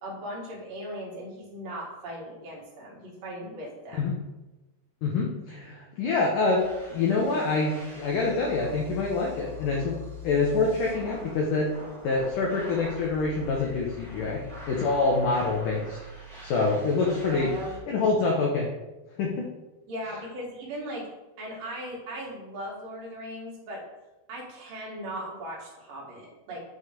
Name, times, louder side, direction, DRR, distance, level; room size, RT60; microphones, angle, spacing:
voice 1, 0.0-4.1 17.1-18.1 19.9-21.1 21.4-23.8 24.3-26.6, right 1 dB, 65° right, -4 dB, 3.1 m, -38 dB
voice 2, 5.0-10.0 10.2-11.7 12.0-14.4 14.7-16.0 16.4-17.5 17.9-18.7 19.2-19.5, left 3 dB, 85° left, -2 dB, 1.8 m, -26 dB
sound 1, 6.6-17.8, left 3 dB, 5° left, 0.3 m, -44 dB
8.1 x 3.1 x 4.9 m, 1.1 s
omnidirectional pair, 4.8 m